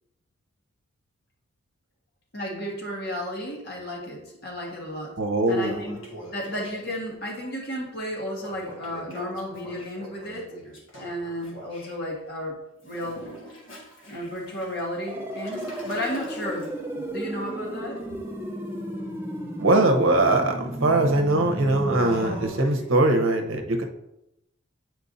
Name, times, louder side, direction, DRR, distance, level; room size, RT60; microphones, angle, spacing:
voice 1, 2.3-5.1 5.5-6.0 6.3-10.5 11.0-12.6 12.8-13.3 14.1-18.0, equal, 50° left, -1 dB, 1.4 m, -33 dB
Toilet flush, 4.6-4.8 5.2-7.1 8.4-11.9 12.8-23.1, equal, 70° left, 1.5 m, -45 dB
voice 2, 5.2-5.8 19.6-23.8, right 2 dB, 75° right, 3 dB, 0.8 m, -21 dB
sound 1, 15.1-22.5, right 1 dB, 10° right, 0.4 m, -34 dB
8.2 x 4.5 x 2.6 m, 0.86 s
head